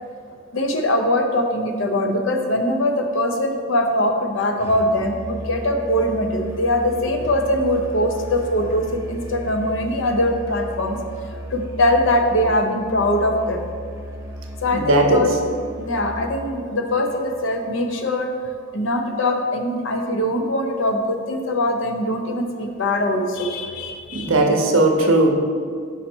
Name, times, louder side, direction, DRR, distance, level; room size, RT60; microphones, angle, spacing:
voice 1, 0.5-11.0 11.5-13.6 14.6-15.3 15.8-18.3 18.7-24.3, left 1 dB, 60° left, 4 dB, 0.6 m, -22 dB
Musical instrument, 4.6-16.4, equal, 10° right, 0.6 m, -35 dB
voice 2, 14.7-15.3 24.1-25.3, right 2 dB, 70° right, 3 dB, 0.7 m, -17 dB
5.5 x 4.2 x 4.4 m, 2.2 s
head